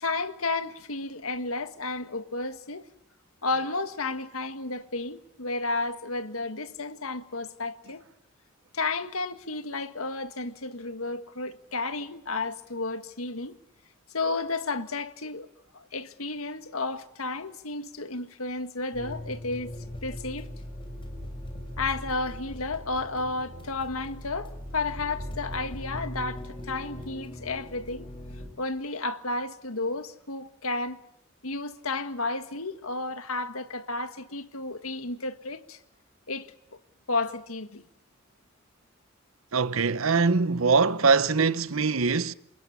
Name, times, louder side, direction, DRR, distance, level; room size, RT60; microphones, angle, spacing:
voice 1, 0.0-2.8 3.4-8.0 8.7-13.6 14.1-15.5 15.7-19.7 20.0-20.5 21.8-28.1 28.6-31.0 31.4-35.8 36.3-36.5 37.1-37.8, left 3 dB, 85° left, 1.8 m, -32 dB
sound 1, 18.9-28.5, left 1 dB, 25° left, 6.5 m, -39 dB
voice 2, 39.5-42.3, right 4 dB, 75° right, 0.9 m, -23 dB
28.0 x 20.5 x 8.4 m
head